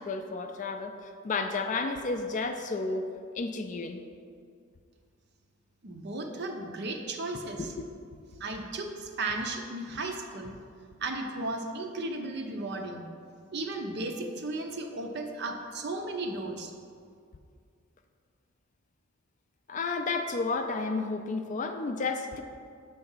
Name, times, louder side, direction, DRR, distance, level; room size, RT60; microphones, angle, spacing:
voice 1, 0.0-3.1 3.3-4.0 7.6-7.7 19.7-22.4, left 3 dB, 35° left, 6 dB, 0.3 m, -32 dB
voice 2, 5.8-7.7 8.4-10.5 11.0-13.0 13.5-16.7, right 2 dB, 50° right, 3 dB, 0.6 m, -35 dB
6.9 x 3.4 x 5.5 m, 2.2 s
head